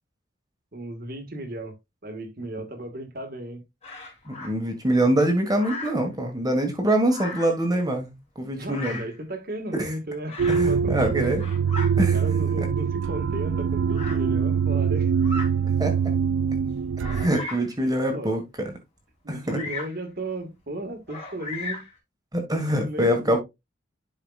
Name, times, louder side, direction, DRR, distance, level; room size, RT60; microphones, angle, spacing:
voice 1, 0.7-1.8 2.0-3.6 8.5-10.4 10.7-11.2 12.1-15.1 18.1-18.3 19.2-21.9 22.5-23.4, right 1 dB, 50° right, 1.6 m, -35 dB
Bird vocalization bird call bird song, 3.8-4.5 5.5-6.1 7.0-7.6 8.6-9.2 10.3-10.7 11.2-11.9 12.8-12.9 13.9-14.2 15.1-15.5 16.1-16.2 17.0-17.7 19.5-20.0 21.1-22.0, left 2 dB, 30° left, 2.9 m, -36 dB
voice 2, 4.3-9.0 9.7-9.9 10.5-11.4 12.0-12.2 15.8-16.0 17.1-18.7 19.3-19.6 22.3-23.4, right 1 dB, 20° right, 1.6 m, -24 dB
sound 1, 10.4-17.3, right 6 dB, 75° right, 0.3 m, -23 dB
11.0 x 4.9 x 2.4 m
head